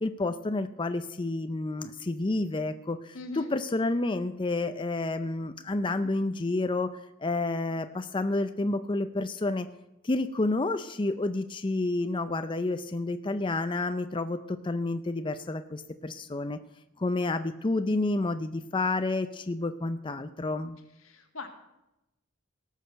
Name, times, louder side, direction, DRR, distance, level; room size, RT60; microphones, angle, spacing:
voice 1, 0.0-9.7 10.0-16.6 17.0-20.8, left 2 dB, 25° left, 9 dB, 0.5 m, -30 dB
voice 2, 3.1-3.5 21.0-21.5, left 3 dB, 90° left, 4 dB, 1.8 m, -40 dB
18.0 x 6.6 x 6.6 m, 0.90 s
head